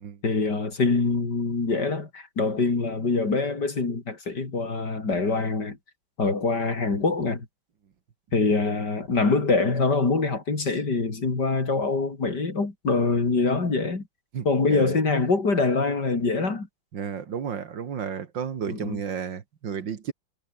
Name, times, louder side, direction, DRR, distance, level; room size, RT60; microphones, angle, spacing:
voice 1, 0.2-5.8 6.2-7.5 8.3-14.0 14.4-16.7 18.7-19.0, left 3 dB, 55° left, 4.5 m, -24 dB
voice 2, 14.3-15.0 16.9-20.1, right 7 dB, 70° right, 2.4 m, -32 dB
omnidirectional pair, 2.1 m